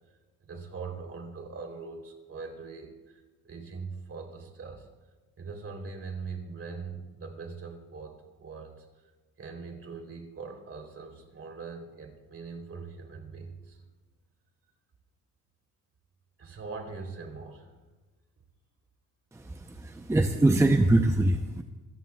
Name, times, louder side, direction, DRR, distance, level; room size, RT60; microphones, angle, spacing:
voice 1, 0.4-4.9 5.4-9.0 9.4-13.8 16.4-17.7, right 4 dB, 45° right, 2 dB, 3.5 m, -41 dB
voice 2, 19.3-21.6, right 2 dB, 10° right, 5 dB, 0.7 m, -23 dB
27.5 x 14.0 x 2.4 m, 1.2 s
cardioid pair, 95°, 34 cm